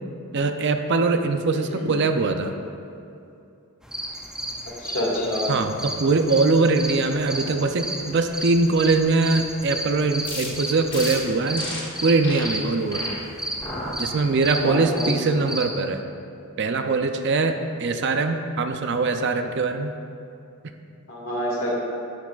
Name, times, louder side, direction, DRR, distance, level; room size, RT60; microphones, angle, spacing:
voice 1, 0.3-2.5 5.5-11.6 12.0-13.0 14.0-16.0 16.6-19.9, right 3 dB, 50° right, 7 dB, 0.5 m, -22 dB
sound 1, 3.8-15.7, right 1 dB, 5° right, 0.5 m, -33 dB
voice 2, 4.8-5.5 7.3-7.5 14.6-15.1 21.1-21.7, left 1 dB, 65° left, -5 dB, 2.0 m, -28 dB
sound 2, 10.2-10.5 10.9-11.1 11.5-11.8 12.2-12.5 12.9-13.1 13.6-13.9 14.4-14.8, left 2 dB, 20° left, 1.3 m, -33 dB
10.0 x 8.2 x 2.4 m, 2.7 s
head